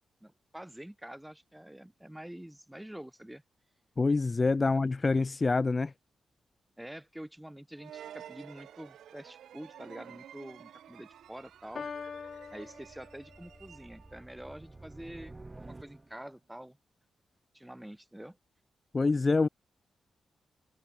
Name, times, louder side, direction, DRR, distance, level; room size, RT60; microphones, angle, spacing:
voice 1, 0.2-3.4 4.6-4.7 6.8-11.9 12.5-16.8 17.5-18.4, right 1 dB, 5° right, 5.1 m, -47 dB
voice 2, 4.0-5.9 18.9-19.5, left 3 dB, 35° left, 0.5 m, -26 dB
sound 1, 7.8-14.2, right 10 dB, 85° right, 4.4 m, -51 dB
sound 2, 11.1-16.4, right 2 dB, 25° right, 8.0 m, -52 dB
Piano, 11.7-13.7, left 5 dB, 55° left, 3.2 m, -43 dB
cardioid pair, 55°, 0 cm